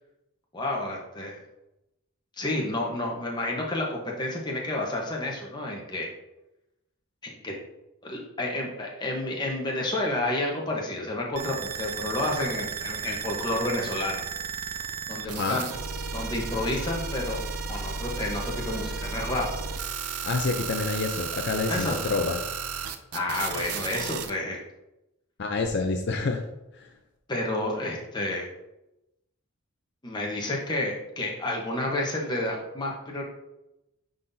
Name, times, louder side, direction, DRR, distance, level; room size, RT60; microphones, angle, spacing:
voice 1, 0.5-1.4 2.4-6.1 7.2-7.5 8.0-14.2 15.1-15.6 16.1-17.4 17.7-19.4 21.7-22.0 23.1-24.6 27.3-28.5 30.0-33.2, left 1 dB, 20° left, -1 dB, 1.0 m, -30 dB
sound 1, 11.3-24.3, right 5 dB, 85° right, 0.5 m, -34 dB
voice 2, 20.2-22.4 25.4-26.4 26.7-26.9, left 3 dB, 50° left, 3 dB, 0.4 m, -28 dB
9.5 x 4.0 x 2.7 m, 0.93 s
head